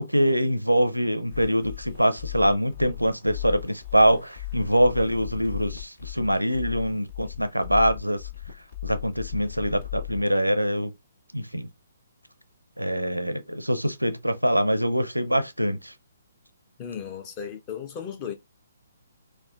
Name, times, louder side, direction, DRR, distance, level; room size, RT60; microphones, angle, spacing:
voice 1, 0.0-8.2 8.8-10.9 11.3-11.7 12.8-15.9, equal, 90° right, 0.5 m, -24 dB
sound 1, 1.3-10.2, left 15 dB, 50° left, 1.4 m, -37 dB
voice 2, 16.8-18.3, left 7 dB, 25° left, 0.7 m, -35 dB
4.7 x 2.2 x 2.4 m
figure-of-eight pair, 130°, 0 cm